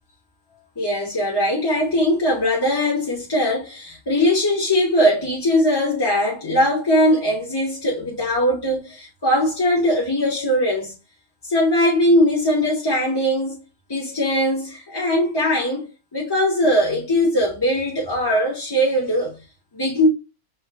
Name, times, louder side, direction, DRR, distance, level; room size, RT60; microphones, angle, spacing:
voice 1, 0.8-10.9 11.4-13.6 13.9-15.9 16.1-19.4 19.7-20.1, left 1 dB, 20° left, 0.8 m, -20 dB
5.6 x 3.0 x 2.2 m
omnidirectional pair, 1.3 m